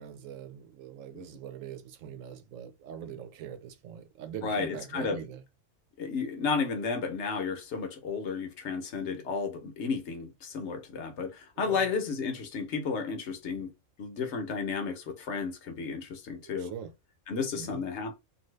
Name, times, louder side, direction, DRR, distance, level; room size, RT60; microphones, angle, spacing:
voice 1, 0.0-5.4 10.7-10.8 11.6-12.0 16.4-16.9 17.5-17.8, right 9 dB, 85° right, 1.0 m, -42 dB
voice 2, 4.4-5.2 6.0-13.7 14.0-16.7 17.3-18.1, left 5 dB, 65° left, 1.0 m, -33 dB
2.6 x 2.6 x 3.1 m
omnidirectional pair, 1.3 m